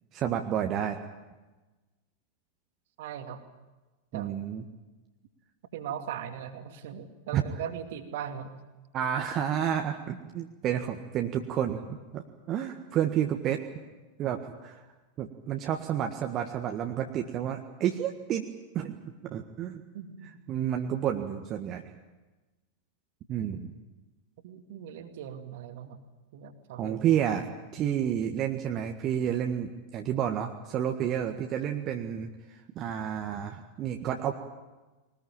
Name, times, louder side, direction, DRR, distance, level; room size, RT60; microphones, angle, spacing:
voice 1, 0.1-1.0 4.1-4.6 7.3-7.4 8.9-13.6 14.2-14.8 15.2-18.4 18.7-19.0 19.2-19.8 20.5-21.8 23.3-23.7 26.8-32.3 32.7-34.3, right 9 dB, 35° right, 4 dB, 1.6 m, -30 dB
voice 2, 3.0-3.4 4.1-4.3 5.7-8.5 19.9-20.4 24.4-26.0 26.3-27.0, right 9 dB, 55° right, 7 dB, 2.4 m, -39 dB
21.5 x 20.0 x 8.9 m, 1.2 s
figure-of-eight pair, 90°, 0 cm